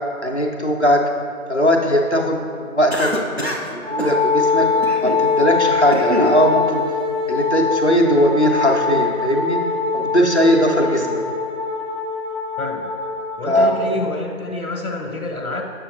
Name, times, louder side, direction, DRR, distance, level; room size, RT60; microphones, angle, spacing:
voice 1, 0.2-1.0 1.5-4.7 5.0-6.8 7.3-9.6 9.9-11.2 13.5-13.8, equal, 50° left, 0 dB, 0.6 m, -19 dB
Cough, 2.9-3.7 4.0-4.2 4.8-5.2 5.7-6.4, equal, 50° right, 0.5 m, -25 dB
Wind instrument woodwind instrument, 3.8-13.8, left 4 dB, 80° right, 1.0 m, -22 dB
voice 2, 12.6-12.9 13.4-15.6, left 2 dB, 85° left, 2 dB, 0.8 m, -28 dB
7.1 x 6.8 x 2.5 m, 2.3 s
figure-of-eight pair, 180°, 43 cm